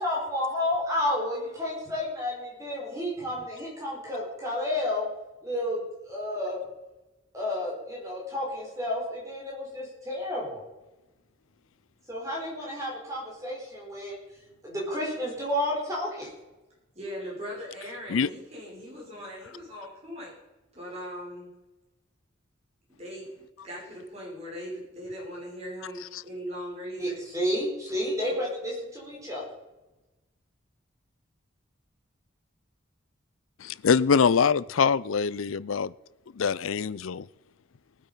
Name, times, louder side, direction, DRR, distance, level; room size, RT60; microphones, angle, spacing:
voice 1, 0.0-5.1 5.4-5.8 6.0-6.6 7.3-10.6 12.1-14.2 14.6-16.3 27.0-29.4, left 1 dB, 15° right, 4.9 m, -31 dB
voice 2, 16.9-20.4 20.7-21.5 23.0-23.3 23.6-27.2, equal, 30° right, 6.1 m, -39 dB
voice 3, 33.6-35.9 36.4-37.3, left 6 dB, 85° left, 0.5 m, -24 dB
19.0 x 8.6 x 5.6 m
head